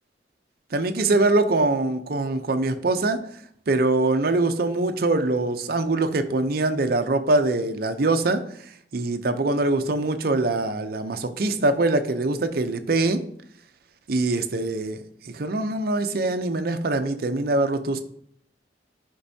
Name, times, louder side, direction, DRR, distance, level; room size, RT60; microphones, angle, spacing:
voice 1, 0.7-3.2 3.7-8.4 8.9-13.2 14.1-15.0 15.3-18.0, right 2 dB, 55° right, 8 dB, 0.6 m, -23 dB
10.0 x 5.3 x 2.7 m, 0.69 s
head